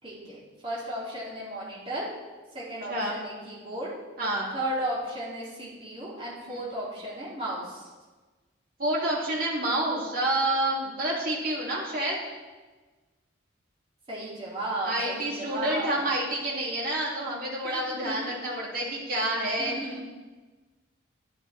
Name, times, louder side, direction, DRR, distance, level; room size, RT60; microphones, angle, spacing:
voice 1, 0.0-2.1 2.5-3.9 4.5-7.9 14.1-16.1 17.6-18.4 19.6-20.1, right 1 dB, 25° right, -8 dB, 3.2 m, -35 dB
voice 2, 2.9-3.2 4.2-4.5 6.5-6.6 8.8-12.2 14.8-19.7, right 1 dB, 45° right, -5 dB, 3.0 m, -28 dB
11.0 x 10.0 x 4.4 m, 1.3 s
head